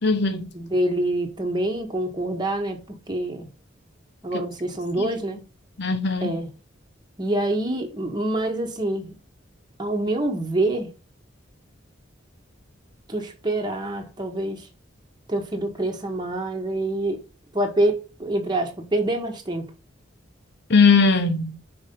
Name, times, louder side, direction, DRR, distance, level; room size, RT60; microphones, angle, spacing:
voice 1, 0.0-0.5 5.0-5.1 5.8-6.4 20.7-21.5, left 4 dB, 60° left, 1.2 m, -19 dB
voice 2, 0.5-2.8 3.1-3.5 4.2-5.4 6.2-6.5 7.2-9.1 9.8-10.9 13.1-14.7 15.3-17.2 17.5-19.6, right 1 dB, 25° right, 1.3 m, -26 dB
5.4 x 4.9 x 5.3 m
head